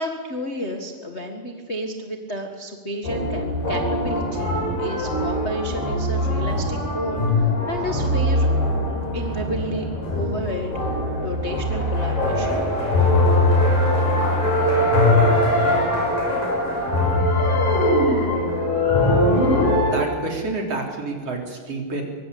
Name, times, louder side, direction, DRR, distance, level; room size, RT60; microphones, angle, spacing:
voice 1, 0.0-8.5 9.1-10.7 11.2-12.6, equal, 30° left, 3 dB, 1.2 m, -31 dB
sound 1, 3.0-19.9, left 1 dB, 70° left, 8.8 m, -21 dB
voice 2, 19.8-22.0, right 3 dB, 45° right, 1 dB, 4.7 m, -28 dB
24.0 x 23.5 x 8.6 m, 1.5 s
omnidirectional pair, 4.1 m